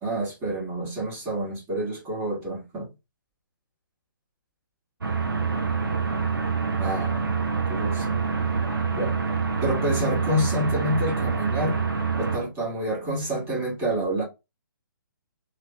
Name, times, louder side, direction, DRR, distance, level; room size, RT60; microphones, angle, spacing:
voice 1, 0.0-2.9 6.8-7.3 7.7-8.2 8.9-9.2 9.6-11.8 12.1-14.2, equal, 20° right, 1.7 m, -28 dB
sound 1, 5.0-12.4, right 5 dB, 80° right, 0.9 m, -26 dB
3.2 x 3.2 x 2.3 m
figure-of-eight pair, 140°, 11 cm